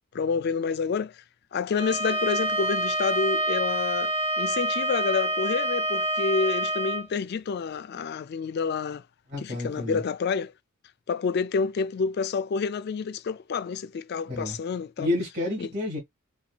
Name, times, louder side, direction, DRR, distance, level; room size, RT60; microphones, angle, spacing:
voice 1, 0.1-1.2 1.5-9.0 9.4-10.5 11.1-15.1 15.6-15.7, left 5 dB, 45° left, 0.3 m, -29 dB
Bowed string instrument, 1.7-7.0, right 1 dB, 10° right, 0.7 m, -27 dB
voice 2, 9.3-10.0 14.3-14.6 15.0-16.0, left 2 dB, 45° right, 1.9 m, -30 dB
4.3 x 2.7 x 2.4 m
head